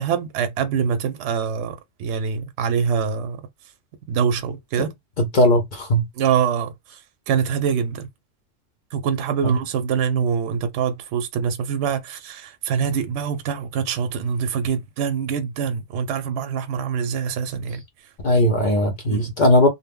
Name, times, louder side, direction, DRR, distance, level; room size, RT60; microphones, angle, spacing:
voice 1, 0.0-3.4 4.1-4.9 6.1-8.1 8.9-18.1 19.1-19.3, right 7 dB, 70° right, 0.8 m, -24 dB
voice 2, 5.3-6.1 9.4-9.5 18.2-19.7, left 1 dB, 50° left, 0.6 m, -18 dB
2.2 x 2.1 x 3.5 m
omnidirectional pair, 1.3 m